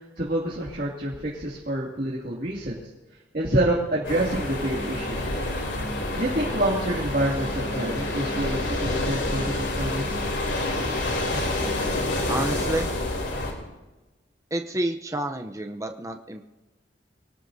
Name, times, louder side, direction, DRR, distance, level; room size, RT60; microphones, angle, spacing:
voice 1, 0.2-2.8 3.3-5.3 6.2-10.0, right 1 dB, 50° right, -4 dB, 2.5 m, -27 dB
sound 1, 4.0-13.5, left 1 dB, 85° left, 3.4 m, -28 dB
voice 2, 12.3-12.9 14.5-16.4, right 1 dB, 15° right, 5 dB, 0.7 m, -29 dB
25.0 x 18.5 x 2.8 m, 1.1 s
head